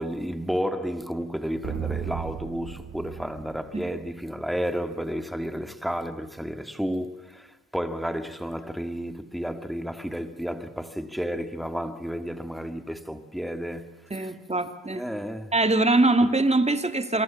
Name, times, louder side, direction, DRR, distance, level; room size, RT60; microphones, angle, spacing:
voice 1, 0.0-14.3 14.9-15.5, equal, ahead, 2.0 m, -32 dB
sound 1, 1.6-4.3, right 9 dB, 45° right, 0.8 m, -35 dB
voice 2, 14.1-15.1 15.5-17.2, right 2 dB, 20° right, 2.3 m, -22 dB
27.0 x 23.5 x 7.4 m
cardioid pair, 70°, 34 cm